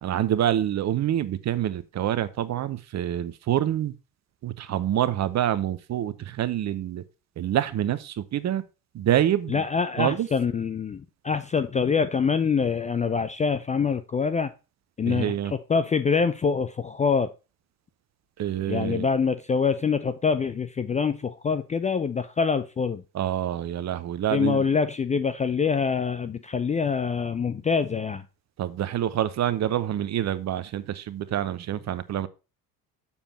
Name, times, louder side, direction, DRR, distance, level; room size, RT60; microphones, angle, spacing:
voice 1, 0.0-3.9 4.4-7.0 7.4-8.6 8.9-9.6 10.0-10.3 15.0-15.5 18.4-19.1 23.1-24.7 28.6-32.3, right 11 dB, 35° right, 0.8 m, -26 dB
voice 2, 9.5-14.5 15.0-17.3 18.7-23.0 24.3-28.2, left 5 dB, 15° left, 0.5 m, -25 dB
7.1 x 7.0 x 4.1 m
figure-of-eight pair, 55°, 47 cm